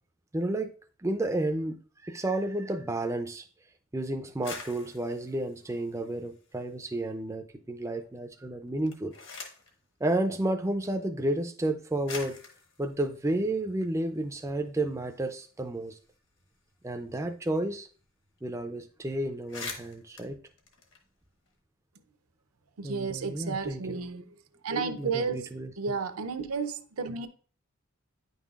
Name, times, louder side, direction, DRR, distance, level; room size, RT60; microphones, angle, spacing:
voice 1, 0.3-0.7 1.0-3.5 3.9-9.1 10.0-12.4 12.8-16.0 16.8-17.9 18.4-20.4 22.8-24.0 25.0-26.0, right 1 dB, 15° right, 0.3 m, -31 dB
sound 1, 4.3-6.8 7.2-7.9 8.7-9.8 10.8-10.9 11.6-11.7 12.0-14.4 14.7-14.8 15.1-17.7 18.0-18.1 18.4-18.6 19.0-19.1 19.3-21.5, left 4 dB, 55° left, 1.2 m, -46 dB
voice 2, 22.8-24.3 24.6-25.5 25.8-27.3, right 5 dB, 80° right, 0.6 m, -32 dB
9.3 x 5.5 x 2.4 m
head